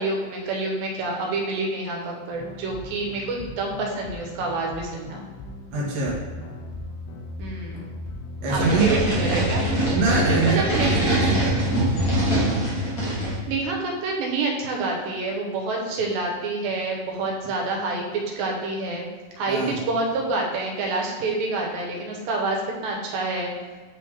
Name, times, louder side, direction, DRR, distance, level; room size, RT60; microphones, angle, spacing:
voice 1, 0.0-5.2 7.4-7.9 8.5-9.6 10.6-10.9 13.5-18.0 18.4-19.0 19.4-23.5, right 3 dB, 85° right, 0 dB, 2.7 m, -27 dB
sound 1, 2.3-11.3, left 2 dB, 80° left, 2.1 m, -37 dB
voice 2, 5.7-6.2 8.4-9.0 9.9-11.9 19.5-19.8, right 3 dB, 60° right, -3 dB, 1.8 m, -24 dB
sound 2, 8.5-13.4, right 1 dB, 55° left, 0.9 m, -23 dB
8.2 x 3.3 x 3.5 m, 1.4 s
omnidirectional pair, 4.1 m